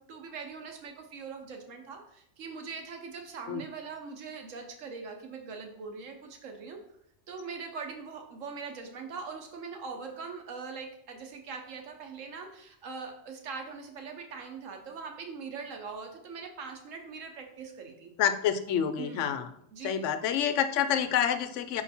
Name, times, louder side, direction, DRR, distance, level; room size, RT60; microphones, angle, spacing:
voice 1, 0.0-6.8 7.3-18.1 19.0-19.3 19.7-20.0, right 5 dB, 85° right, 4 dB, 1.3 m, -42 dB
voice 2, 18.2-19.5 19.8-21.8, left 8 dB, 75° left, 11 dB, 0.9 m, -28 dB
5.7 x 4.5 x 4.2 m, 0.71 s
omnidirectional pair, 1.3 m